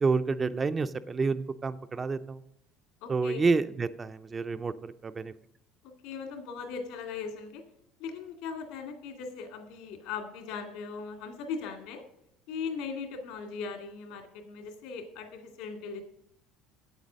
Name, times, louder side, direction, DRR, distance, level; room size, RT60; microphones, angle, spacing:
voice 1, 0.0-2.4 3.1-5.3, right 4 dB, 20° right, 11 dB, 0.4 m, -29 dB
voice 2, 3.0-3.4 6.0-7.6 8.0-12.0 12.5-16.0, left 5 dB, 75° left, 4 dB, 2.3 m, -39 dB
8.2 x 8.1 x 6.3 m, 0.77 s
cardioid pair, 150°, 0 cm